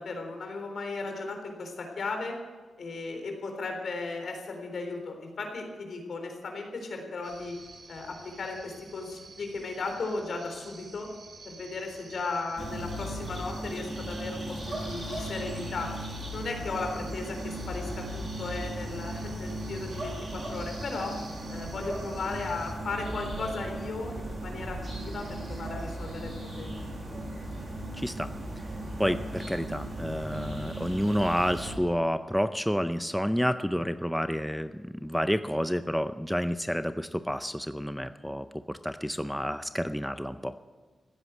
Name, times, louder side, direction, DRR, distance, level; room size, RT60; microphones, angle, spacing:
voice 1, 0.0-2.4 2.8-7.6 7.9-11.1 11.4-16.0 16.3-21.2 21.5-26.7, left 3 dB, 65° left, 4 dB, 3.7 m, -36 dB
sound 1, 7.2-22.7, right 3 dB, 55° right, 2.6 m, -50 dB
sound 2, 12.6-31.8, right 1 dB, 35° right, 6.0 m, -37 dB
voice 2, 28.0-28.3 29.0-40.5, equal, ahead, 10 dB, 0.5 m, -29 dB
15.5 x 9.8 x 8.3 m, 1.3 s
wide cardioid pair, 105°, 0 cm